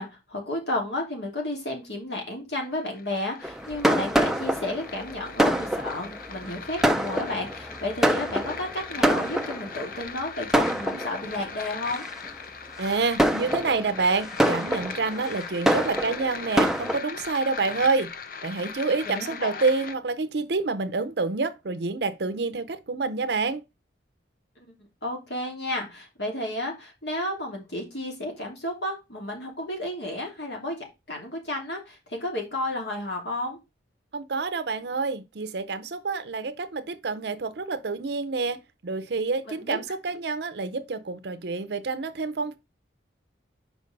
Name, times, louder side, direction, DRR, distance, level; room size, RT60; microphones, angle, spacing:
voice 1, 0.0-12.0 19.0-19.6 24.6-24.7 25.0-33.6 39.5-39.8, left 1 dB, 65° left, 3.0 m, -32 dB
sound 1, 2.7-20.0, left 5 dB, 50° left, 0.6 m, -39 dB
Fireworks, 3.4-9.9 10.5-11.4 12.0-12.3 12.8-17.0, right 1 dB, 5° right, 0.4 m, -26 dB
voice 2, 12.8-18.1 18.4-23.6 34.1-42.6, right 4 dB, 65° right, 0.6 m, -28 dB
5.3 x 5.0 x 5.1 m
head